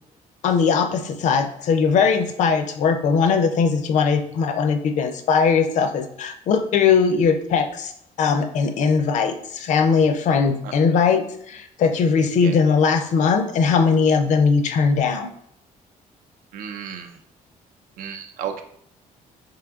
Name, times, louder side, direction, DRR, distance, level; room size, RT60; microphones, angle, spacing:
voice 1, 0.4-7.9 8.2-15.3, left 5 dB, 60° left, 8 dB, 0.5 m, -20 dB
voice 2, 16.5-17.2 18.0-18.6, right 8 dB, 90° right, 6 dB, 0.5 m, -33 dB
3.7 x 2.9 x 3.5 m, 0.70 s
cardioid pair, 160°, 14 cm